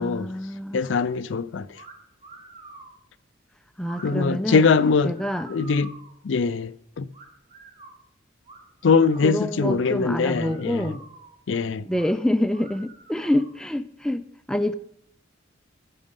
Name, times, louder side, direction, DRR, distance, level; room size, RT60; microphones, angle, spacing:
voice 1, 0.0-0.8 3.8-4.7 5.1-5.5 9.2-11.0 11.9-14.7, left 1 dB, 5° left, 0.3 m, -26 dB
voice 2, 0.7-1.7 4.0-5.2 5.5-5.9 6.2-7.1 8.8-11.0 11.5-11.8, left 5 dB, 65° left, 0.4 m, -22 dB
sound 1, 1.8-1.9 2.2-3.0 3.8-4.1 4.6-6.1 7.1-8.0 8.5-9.4 9.8-9.9 10.3-11.4 11.9-12.1 12.5-13.6, right 3 dB, 40° right, 4.2 m, -47 dB
15.0 x 6.3 x 5.3 m
head